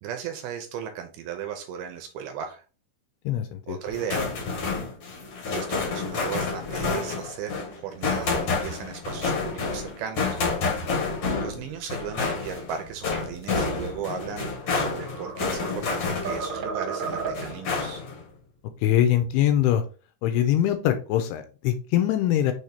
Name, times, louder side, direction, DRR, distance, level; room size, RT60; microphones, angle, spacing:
voice 1, 0.0-2.6 3.7-4.3 5.4-10.4 11.4-18.0, right 8 dB, 80° right, 6 dB, 2.3 m, -36 dB
voice 2, 3.3-3.8 18.8-19.8 20.2-22.5, left 11 dB, 85° left, 8 dB, 2.4 m, -23 dB
sound 1, 3.9-16.6 17.0-18.2, left 4 dB, 65° left, 1.4 m, -29 dB
sound 2, 14.5-15.9 16.2-17.7, right 4 dB, 65° right, 1.5 m, -33 dB
6.5 x 3.5 x 4.2 m, 0.35 s
omnidirectional pair, 4.9 m